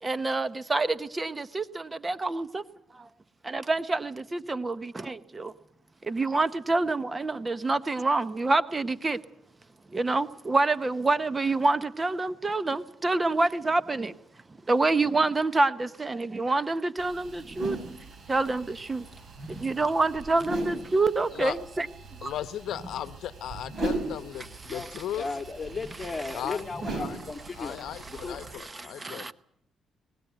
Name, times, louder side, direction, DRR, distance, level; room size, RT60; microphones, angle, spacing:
voice 1, 0.0-2.6 2.9-3.1 3.4-5.5 6.0-9.2 9.9-14.1 14.7-17.8 18.3-19.0 19.5-21.9 22.2-22.3 24.7-25.0 25.9-26.4 27.6-27.7 28.5-29.3, right 3 dB, 25° right, 15 dB, 0.8 m, -27 dB
sound 1, 17.0-28.5, right 2 dB, 50° right, 6.6 m, -39 dB
voice 2, 22.2-25.4 26.3-26.6 26.9-27.2 27.5-29.3, left 11 dB, 75° left, 14 dB, 0.8 m, -36 dB
voice 3, 25.2-27.8 28.1-28.4, left 4 dB, 25° left, 6 dB, 2.4 m, -35 dB
24.5 x 19.5 x 8.1 m, 0.73 s
cardioid pair, 90°, 0 cm